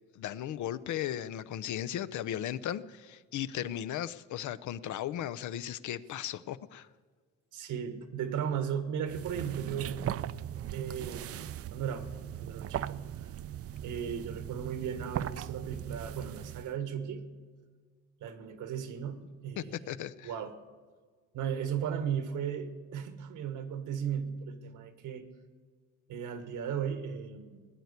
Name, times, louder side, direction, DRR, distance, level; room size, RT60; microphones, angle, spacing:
voice 1, 0.1-6.9 19.6-20.3, left 11 dB, 75° left, 15 dB, 0.7 m, -36 dB
voice 2, 7.5-10.1 10.7-13.3 13.8-17.3 18.2-19.7 20.2-20.6 21.3-25.3 26.1-27.7, right 8 dB, 85° right, 10 dB, 1.5 m, -36 dB
sound 1, 9.1-16.8, right 11 dB, 50° right, 0.5 m, -39 dB
17.5 x 9.6 x 8.2 m, 1.5 s
cardioid pair, 90°, 30 cm